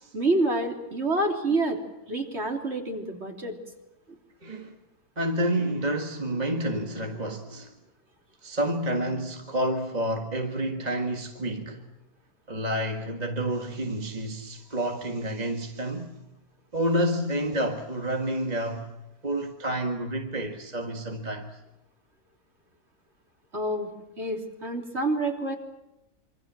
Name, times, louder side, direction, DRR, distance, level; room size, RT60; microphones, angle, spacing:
voice 1, 0.1-1.8 2.1-3.6 23.5-23.9 24.2-25.5, right 2 dB, 45° right, 3.7 m, -27 dB
voice 2, 4.4-4.8 5.2-7.7 8.4-11.8 12.5-16.1 16.7-18.9 19.2-21.6, right 1 dB, 25° right, 1.8 m, -29 dB
26.5 x 25.0 x 7.6 m
omnidirectional pair, 1.6 m